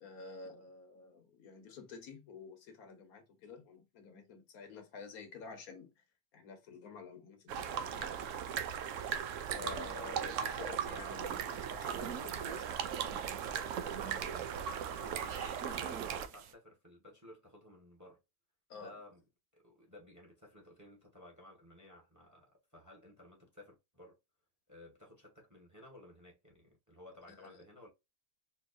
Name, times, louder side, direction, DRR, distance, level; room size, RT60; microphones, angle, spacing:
voice 1, 0.0-6.0 6.3-8.2 9.5-12.8 18.7-18.9 27.4-27.6, left 5 dB, 75° left, 1.5 m, -50 dB
sound 1, 7.5-16.3, right 8 dB, 70° right, 0.8 m, -38 dB
sound 2, 11.2-16.5, right 7 dB, 85° right, 1.2 m, -48 dB
voice 2, 14.0-14.6 15.0-18.2 18.7-19.2 19.5-24.2 24.7-27.9, left 1 dB, 15° right, 1.1 m, -56 dB
4.4 x 2.8 x 2.6 m
omnidirectional pair, 1.6 m